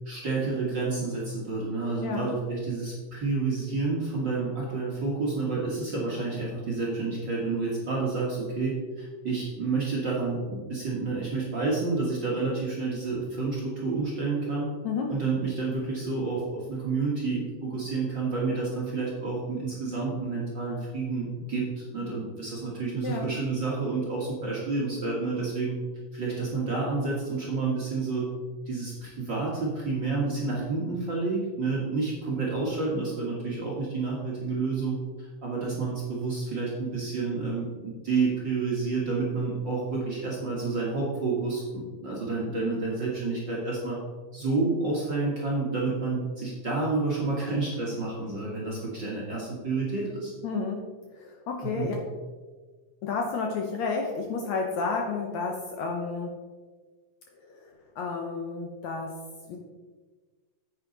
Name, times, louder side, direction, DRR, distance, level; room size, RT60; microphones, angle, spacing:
voice 1, 0.0-14.7 15.1-25.8 26.1-28.3 28.6-44.0 44.3-50.3 51.6-51.9, right 3 dB, 45° right, -4 dB, 1.6 m, -29 dB
voice 2, 50.4-50.8 51.1-52.0 53.0-56.3 57.4-59.2 59.5-59.6, left 4 dB, 70° left, 2 dB, 1.9 m, -31 dB
9.4 x 8.1 x 3.9 m, 1.4 s
omnidirectional pair, 4.0 m